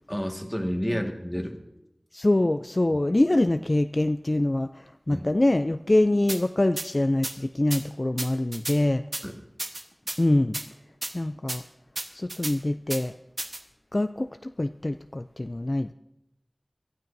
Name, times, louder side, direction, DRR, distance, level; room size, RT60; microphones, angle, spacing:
voice 1, 0.1-1.6 5.1-5.3 9.2-9.4, equal, 5° left, 3 dB, 1.8 m, -30 dB
voice 2, 2.1-9.0 10.2-10.6 11.1-11.6 12.1-13.1 13.9-15.9, left 1 dB, 45° left, 9 dB, 0.4 m, -24 dB
sound 1, 6.3-6.4 6.8-6.9 7.2-7.3 7.7-7.8 8.2-8.8 9.1-9.2 9.6-10.2 10.5-10.6 11.0-11.1 11.5-11.6 11.9-12.5 12.9-13.0 13.4-13.6, right 2 dB, 65° right, 1.2 m, -32 dB
24.0 x 12.5 x 2.7 m, 0.89 s
wide cardioid pair, 45°, 0 cm